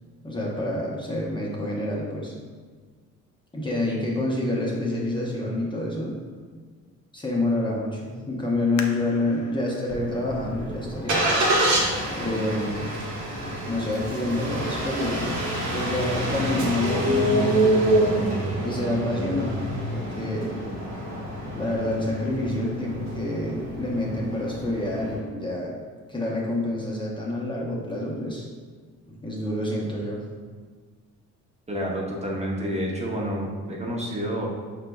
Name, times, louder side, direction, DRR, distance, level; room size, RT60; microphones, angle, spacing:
voice 1, 0.2-2.3 3.5-6.1 7.1-11.3 12.1-12.9 13.7-15.4 15.7-17.7 18.6-20.6 21.5-25.7 26.1-28.5 29.1-30.2, left 1 dB, 15° left, -4 dB, 0.7 m, -28 dB
sound 1, 8.8-12.1 12.7-12.8 13.5-13.8 14.2-14.3, left 6 dB, 75° left, 0.5 m, -43 dB
Engine starting, 9.9-25.2, right 1 dB, 70° right, 1.1 m, -27 dB
voice 2, 31.7-34.5, equal, 20° right, -3 dB, 0.7 m, -29 dB
4.9 x 3.3 x 2.2 m, 1.5 s
cardioid pair, 90°, 30 cm